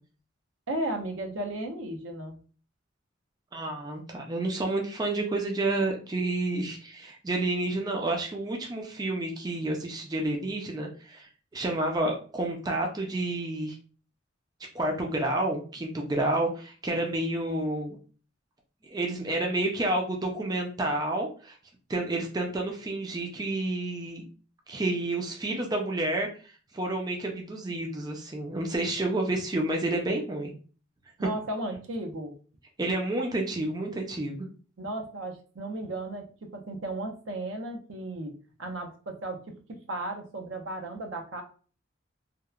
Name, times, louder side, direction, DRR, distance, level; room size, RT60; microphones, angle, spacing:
voice 1, 0.7-2.4 31.2-32.3 34.8-38.3 38.6-39.4 39.9-41.4, right 1 dB, 80° right, 3 dB, 0.6 m, -35 dB
voice 2, 3.5-13.8 14.7-18.0 18.9-21.6 21.9-24.3 24.7-30.5 32.8-34.5, right 2 dB, 20° right, 1 dB, 0.4 m, -30 dB
2.8 x 2.1 x 2.3 m, 0.38 s
head